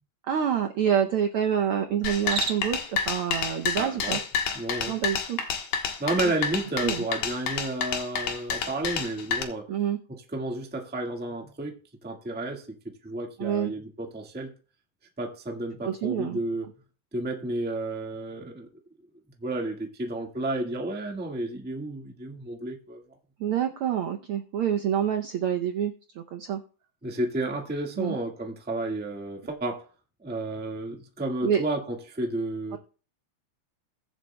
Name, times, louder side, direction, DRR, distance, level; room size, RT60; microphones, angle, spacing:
voice 1, 0.3-4.2 4.9-5.4 6.2-6.3 6.8-7.0 9.7-10.0 13.4-13.7 15.8-16.4 23.4-25.9 26.3-26.6 28.0-28.2 31.4-31.6 32.7-32.8, right 9 dB, 90° right, 1.2 m, -27 dB
sound 1, 2.0-9.4, left 7 dB, 85° left, 2.7 m, -29 dB
Cricket, 2.1-2.9, right 5 dB, 45° right, 1.4 m, -32 dB
voice 2, 3.8-4.2 4.5-4.9 6.0-9.7 10.1-11.8 12.0-12.8 13.0-14.5 15.2-16.7 17.1-18.7 19.4-23.0 27.0-29.9 30.2-32.8, right 2 dB, 10° right, 0.6 m, -31 dB
22.0 x 7.5 x 2.2 m
omnidirectional pair, 3.3 m